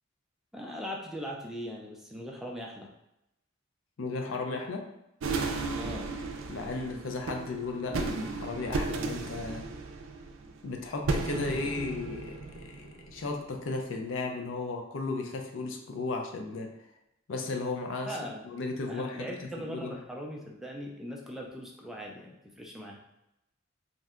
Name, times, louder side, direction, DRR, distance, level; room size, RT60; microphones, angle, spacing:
voice 1, 0.5-2.9 5.7-6.1 18.1-18.5 18.9-23.0, equal, ahead, -1 dB, 0.3 m, -40 dB
voice 2, 4.0-4.9 6.5-9.7 10.6-16.7 17.3-20.0, left 3 dB, 75° left, 3 dB, 0.5 m, -35 dB
sound 1, 5.2-13.4, right 3 dB, 75° right, 0.4 m, -35 dB
2.6 x 2.1 x 3.6 m, 0.86 s
head